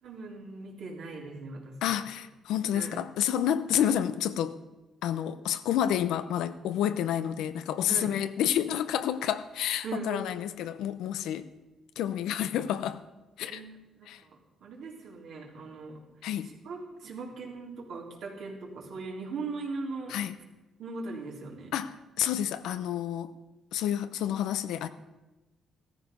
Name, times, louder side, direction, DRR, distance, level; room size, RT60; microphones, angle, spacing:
voice 1, 0.0-2.0 2.7-3.0 7.9-8.1 9.8-10.3 13.5-16.0 16.6-20.2 20.8-21.7, right 3 dB, 75° right, 3.6 m, -39 dB
voice 2, 1.8-4.6 5.0-11.5 12.0-13.0 13.4-13.6 14.1-14.2 16.2-16.5 20.1-20.4 21.7-23.3 23.7-24.9, left 10 dB, 90° left, 0.8 m, -29 dB
15.5 x 14.0 x 5.4 m
cardioid pair, 90°, 0 cm